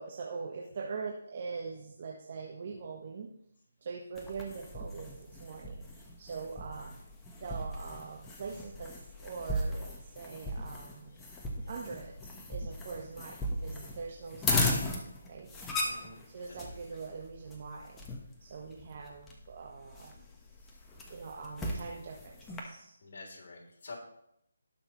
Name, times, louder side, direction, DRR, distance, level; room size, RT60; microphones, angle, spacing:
voice 1, 0.0-3.3 3.8-6.9 7.4-8.9 9.2-11.2 11.6-12.2 12.5-14.9 15.3-15.5 16.3-18.1 18.4-20.3 21.1-23.0, right 5 dB, 45° right, -1 dB, 1.4 m, -42 dB
sound 1, 4.2-22.6, left 1 dB, 10° left, 1.3 m, -37 dB
voice 2, 15.8-16.6 23.0-24.0, left 3 dB, 55° left, -2 dB, 3.5 m, -48 dB
18.5 x 6.2 x 3.2 m, 0.75 s
figure-of-eight pair, 155°, 0 cm